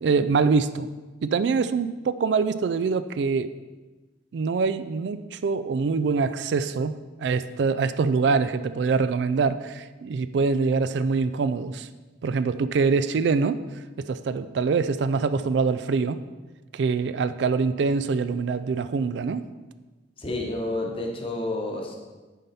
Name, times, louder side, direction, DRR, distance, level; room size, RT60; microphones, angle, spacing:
voice 1, 0.0-0.9 1.2-3.5 4.3-11.9 12.2-13.6 14.1-16.2 16.7-19.5, right 4 dB, 65° right, 13 dB, 0.3 m, -24 dB
voice 2, 20.2-22.0, left 2 dB, 30° left, -1 dB, 1.0 m, -30 dB
7.2 x 5.4 x 4.2 m, 1.2 s
head